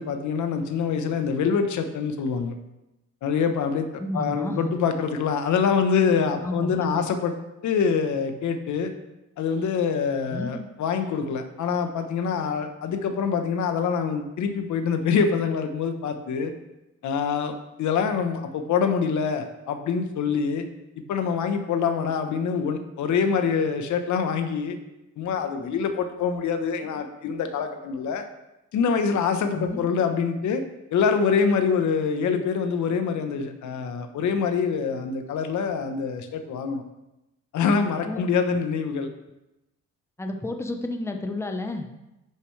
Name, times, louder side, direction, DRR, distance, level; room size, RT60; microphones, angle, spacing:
voice 1, 0.0-2.6 3.2-3.9 4.1-7.3 7.6-8.9 9.4-16.5 17.0-20.6 21.1-24.8 25.2-28.2 28.7-30.6 30.9-36.8 37.5-39.1, left 6 dB, 75° left, 7 dB, 1.0 m, -25 dB
voice 2, 4.0-4.8 6.4-7.1 10.3-10.6 29.5-29.8 38.0-38.2 38.5-38.6 40.2-41.9, left 1 dB, 10° left, 4 dB, 0.9 m, -31 dB
10.0 x 6.7 x 3.3 m, 0.95 s
cardioid pair, 90°, 30 cm